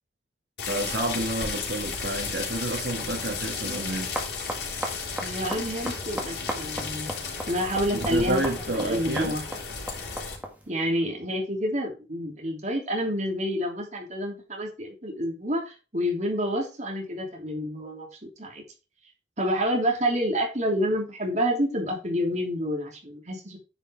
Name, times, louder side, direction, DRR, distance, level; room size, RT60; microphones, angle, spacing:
sound 1, 0.6-10.4, left 5 dB, 70° left, 3.9 m, -34 dB
voice 1, 0.7-4.2 7.9-9.3, right 1 dB, 75° right, 1.7 m, -30 dB
sound 2, 3.8-10.7, right 1 dB, 10° right, 1.9 m, -38 dB
voice 2, 5.2-7.1 7.5-9.4 10.7-18.6 19.4-23.6, equal, 40° right, 2.9 m, -28 dB
9.8 x 5.3 x 4.6 m
head